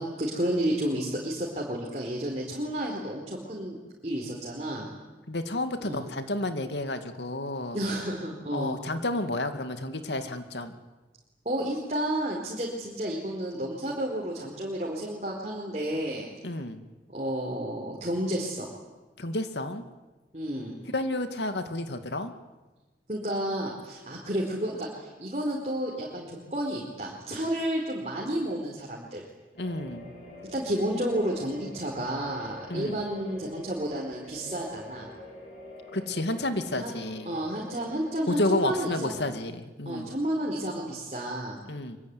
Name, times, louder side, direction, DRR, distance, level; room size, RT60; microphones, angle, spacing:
voice 1, 0.0-3.8 4.0-4.9 5.8-6.0 7.7-8.8 11.4-16.3 17.1-18.7 20.3-20.8 23.1-29.2 30.5-35.1 36.7-36.9 37.3-39.2 39.8-41.6, right 1 dB, 40° right, -2 dB, 4.3 m, -31 dB
voice 2, 5.3-7.8 8.5-10.8 16.4-16.8 19.2-19.8 20.9-22.3 29.6-30.1 32.7-33.0 35.9-37.4 38.3-40.1 41.7-42.0, left 2 dB, 85° left, 8 dB, 2.4 m, -31 dB
sound 1, 29.6-38.4, left 2 dB, 45° left, 7.7 m, -46 dB
24.5 x 24.0 x 9.8 m, 1.2 s
head